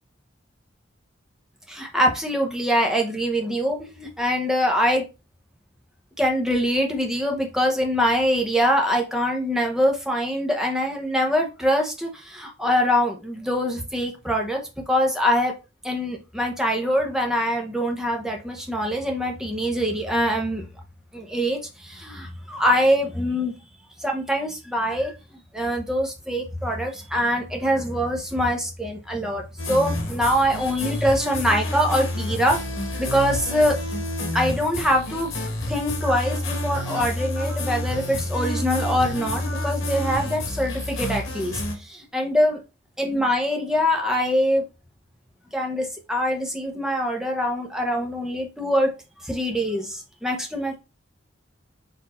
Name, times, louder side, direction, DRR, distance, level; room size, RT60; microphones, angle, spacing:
voice 1, 1.7-5.0 6.2-14.6 14.9-15.5 15.8-20.6 21.1-23.5 24.0-25.1 25.5-32.6 33.0-33.8 34.3-35.3 35.7-42.6 43.0-44.6 45.5-48.9 49.2-50.8, equal, 5° right, 1 dB, 0.9 m, -24 dB
sound 1, 29.6-41.8, left 1 dB, 85° left, 1.3 m, -29 dB
4.3 x 2.6 x 4.3 m, 0.28 s
head